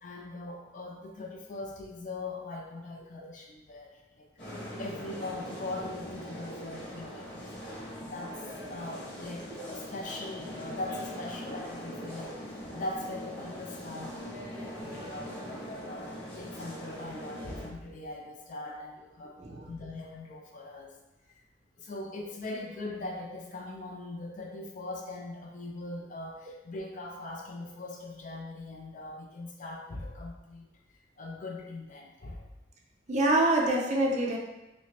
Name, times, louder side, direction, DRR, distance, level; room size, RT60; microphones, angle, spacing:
voice 1, 0.0-4.3 4.8-7.7 8.1-21.0 21.8-30.7 31.2-32.5, left 2 dB, 45° left, 1 dB, 0.5 m, -41 dB
sound 1, 4.4-17.7, equal, 80° left, 1.3 m, -41 dB
voice 2, 33.1-34.4, right 1 dB, 40° right, -2 dB, 0.5 m, -25 dB
3.1 x 2.8 x 2.8 m, 0.96 s
head